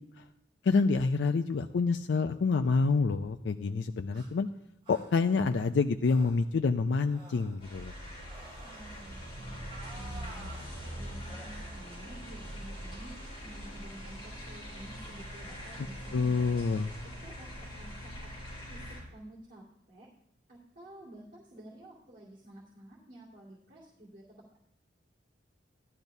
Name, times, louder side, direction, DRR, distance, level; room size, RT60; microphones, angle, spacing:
voice 1, 0.6-4.5 4.9-7.9 16.1-16.9, left 4 dB, 80° left, 8 dB, 0.4 m, -27 dB
sound 1, 4.1-4.3 4.8-5.1 6.0-6.5 7.0-7.6 8.2-9.1 9.6-10.7 11.3-11.6, right 2 dB, 30° right, 3.7 m, -51 dB
sound 2, 7.6-19.0, equal, 30° left, 5.4 m, -43 dB
voice 2, 8.6-9.6 9.9-13.1 13.4-16.6 17.2-17.5 17.8-18.3 18.7-18.8 19.1-20.1 20.5-24.2, right 1 dB, 50° right, -7 dB, 2.3 m, -51 dB
16.0 x 12.0 x 2.7 m, 0.80 s
head